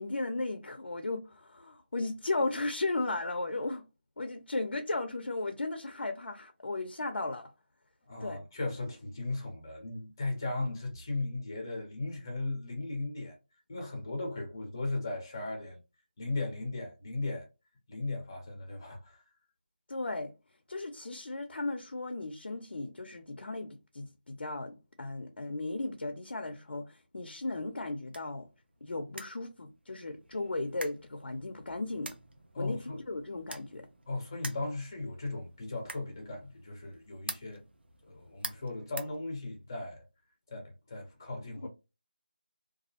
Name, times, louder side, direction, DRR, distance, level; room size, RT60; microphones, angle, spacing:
voice 1, 0.0-3.8 4.2-7.5 8.2-8.4 19.9-20.3 20.7-28.5 28.8-32.1 32.6-33.9 41.6-41.7, left 2 dB, 90° left, 0.4 m, -36 dB
voice 2, 8.1-13.4 13.7-15.8 16.2-17.5 17.9-19.2 32.5-33.0 34.1-37.6 38.1-40.0 40.5-41.7, left 2 dB, 20° left, 0.6 m, -37 dB
sound 1, 27.6-39.8, right 2 dB, 80° right, 0.5 m, -48 dB
2.3 x 2.0 x 2.7 m
figure-of-eight pair, 175°, 6 cm